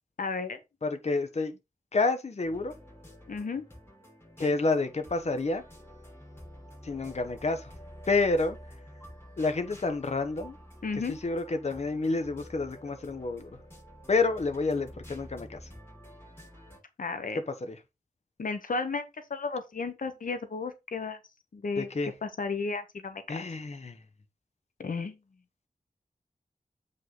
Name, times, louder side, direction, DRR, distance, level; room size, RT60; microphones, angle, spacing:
voice 1, 0.2-0.6 3.3-3.6 10.8-11.1 17.0-17.4 18.4-21.2 21.5-23.4 24.8-25.2, left 4 dB, 70° left, 1.1 m, -33 dB
voice 2, 0.8-1.6 1.9-2.7 4.4-5.6 6.8-7.7 8.1-8.6 9.4-10.6 10.9-13.6 14.1-15.6 17.3-17.8 21.8-22.1 23.3-24.0, left 3 dB, 50° left, 1.1 m, -29 dB
sound 1, 2.4-16.8, equal, 15° left, 6.0 m, -49 dB
8.1 x 5.5 x 3.9 m
wide cardioid pair, 95°, 14 cm